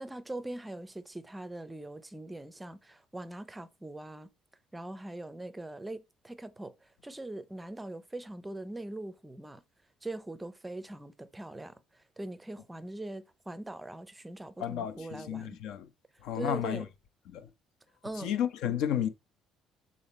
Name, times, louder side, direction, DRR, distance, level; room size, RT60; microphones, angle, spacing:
voice 1, 0.0-4.3 4.7-9.6 10.0-15.6 16.3-16.8 18.0-18.3, right 2 dB, 10° right, 0.5 m, -42 dB
voice 2, 14.6-15.9 16.2-16.9 17.3-17.5 18.2-19.1, left 10 dB, 75° left, 1.0 m, -32 dB
7.0 x 4.2 x 4.2 m
cardioid pair, 170°, 0 cm